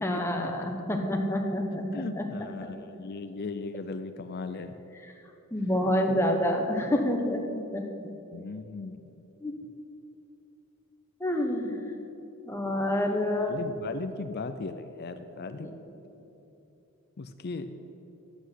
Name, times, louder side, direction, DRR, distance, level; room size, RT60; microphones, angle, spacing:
voice 1, 0.0-2.3 5.5-7.8 9.4-9.5 11.2-11.7 12.5-13.6 15.6-15.7, left 1 dB, 10° left, 2 dB, 1.1 m, -28 dB
voice 2, 1.9-4.7 8.3-9.1 13.5-15.7 17.2-17.7, left 3 dB, 45° left, 10 dB, 0.5 m, -37 dB
10.5 x 7.9 x 8.1 m, 3.0 s
head